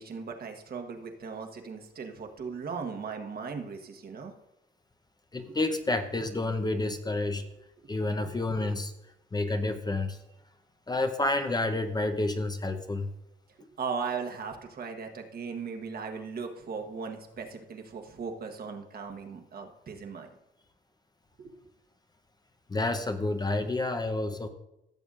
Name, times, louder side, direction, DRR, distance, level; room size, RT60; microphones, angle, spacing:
voice 1, 0.0-4.3 5.5-5.6 8.2-8.3 13.8-20.3 21.4-21.5, right 5 dB, 50° right, 4 dB, 1.2 m, -38 dB
voice 2, 5.3-7.5 7.9-8.9 9.3-10.2 10.9-13.1 22.7-24.5, left 2 dB, 20° left, 7 dB, 0.7 m, -29 dB
15.5 x 7.0 x 2.5 m, 0.87 s
cardioid pair, 90°, 20 cm